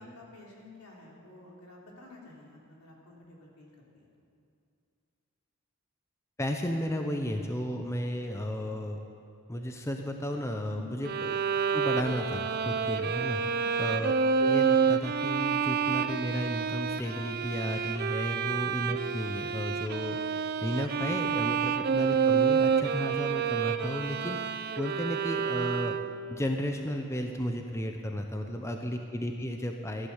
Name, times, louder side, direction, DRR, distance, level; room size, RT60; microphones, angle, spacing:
voice 1, 0.0-4.1 10.7-11.0 13.6-13.9 18.3-18.6 28.5-28.9, left 3 dB, 80° left, -2 dB, 3.3 m, -51 dB
voice 2, 6.4-9.0 9.5-11.3 11.7-14.1 14.4-24.4 24.8-26.0 26.3-30.1, equal, 10° left, 4 dB, 0.7 m, -33 dB
Bowed string instrument, 11.0-26.3, right 6 dB, 45° right, 0.5 m, -28 dB
15.0 x 11.5 x 7.2 m, 2.5 s
head